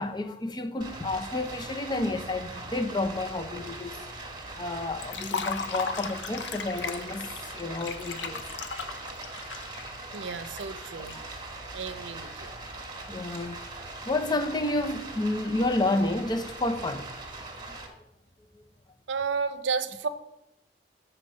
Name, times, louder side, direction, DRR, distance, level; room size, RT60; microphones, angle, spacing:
voice 1, 0.0-4.0 4.6-8.4 11.1-11.3 13.1-13.6 14.0-17.1 17.7-17.9, left 2 dB, 25° left, 0.6 m, -30 dB
Stream, 0.8-17.9, right 2 dB, 25° right, 1.5 m, -41 dB
Liquid, 5.0-11.1, left 5 dB, 75° left, 0.7 m, -36 dB
voice 2, 10.1-11.2 11.7-12.5 19.1-20.1, right 5 dB, 75° right, 0.6 m, -32 dB
7.7 x 4.4 x 6.4 m
head